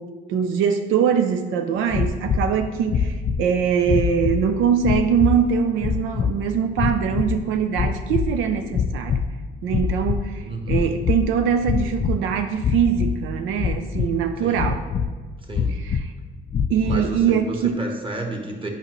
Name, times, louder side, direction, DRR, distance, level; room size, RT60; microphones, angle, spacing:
voice 1, 0.0-9.2 9.6-14.8 15.7-16.1 16.7-17.8, right 7 dB, 90° right, 7 dB, 0.4 m, -22 dB
sound 1, 1.9-2.5 2.9-3.5 3.8-4.5 4.8-5.4 5.8-6.3 6.8-7.4 7.7-8.4 8.7-9.3 9.7-10.2 10.6-11.3 11.6-12.2 12.6-13.2 13.6-14.2 14.5-15.1 15.5-16.1 16.5-17.1, left 6 dB, 40° left, 0.4 m, -24 dB
voice 2, 10.5-10.9 14.4-14.7 15.5-15.8 16.8-18.7, right 2 dB, 25° right, 1 dB, 1.3 m, -31 dB
8.8 x 5.2 x 3.0 m, 1.4 s
cardioid pair, 90°, 20 cm